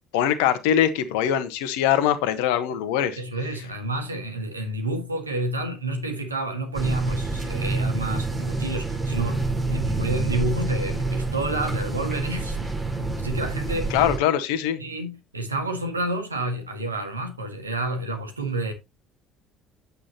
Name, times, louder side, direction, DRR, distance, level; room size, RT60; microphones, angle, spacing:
voice 1, 0.1-3.2 13.9-14.8, left 10 dB, 65° left, 1.3 m, -22 dB
voice 2, 3.2-12.6 13.2-13.9 14.8-18.7, right 2 dB, 85° right, 1.8 m, -29 dB
sound 1, 6.7-14.2, right 3 dB, 20° right, 5.2 m, -27 dB
9.8 x 8.9 x 2.9 m
figure-of-eight pair, 55°, 0 cm